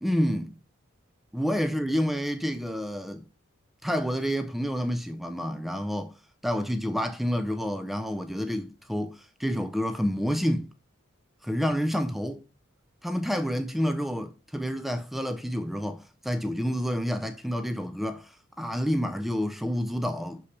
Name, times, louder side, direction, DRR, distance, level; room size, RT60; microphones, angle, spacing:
voice 1, 0.0-0.6 1.3-3.2 3.8-6.1 6.4-10.7 11.4-12.4 13.0-20.4, equal, ahead, 0.4 m, -29 dB
6.3 x 5.6 x 3.2 m
head